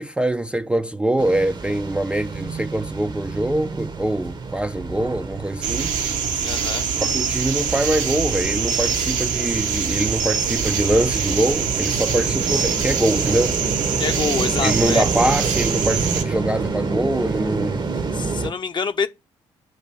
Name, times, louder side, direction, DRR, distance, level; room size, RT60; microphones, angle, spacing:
voice 1, 0.0-5.9 7.0-13.6 14.6-17.9, right 1 dB, 5° right, 0.4 m, -23 dB
sound 1, 1.2-18.5, right 4 dB, 30° right, 0.8 m, -28 dB
sound 2, 5.6-16.2, right 6 dB, 65° right, 0.8 m, -24 dB
voice 2, 6.4-6.9 14.0-15.0 18.1-19.1, left 5 dB, 30° left, 0.7 m, -26 dB
7.5 x 2.6 x 5.8 m
figure-of-eight pair, 40°, 15 cm